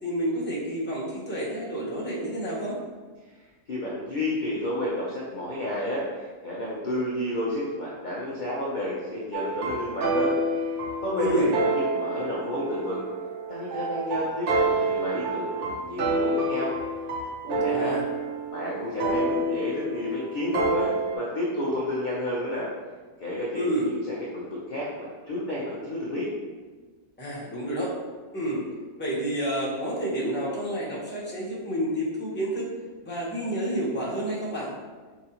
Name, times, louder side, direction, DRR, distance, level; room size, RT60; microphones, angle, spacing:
voice 1, 0.0-2.7 11.2-11.5 17.7-18.0 23.5-23.9 27.2-27.9 28.3-28.6 29.0-32.6 33.0-34.7, equal, 10° left, -6 dB, 0.6 m, -29 dB
voice 2, 3.7-10.6 11.0-13.0 13.5-16.7 17.4-18.0 18.5-22.7 23.2-26.3, left 1 dB, 55° left, -6 dB, 0.5 m, -31 dB
sound 1, 9.3-21.2, right 2 dB, 60° right, 0.8 m, -28 dB
5.0 x 2.8 x 2.9 m, 1.4 s
omnidirectional pair, 1.6 m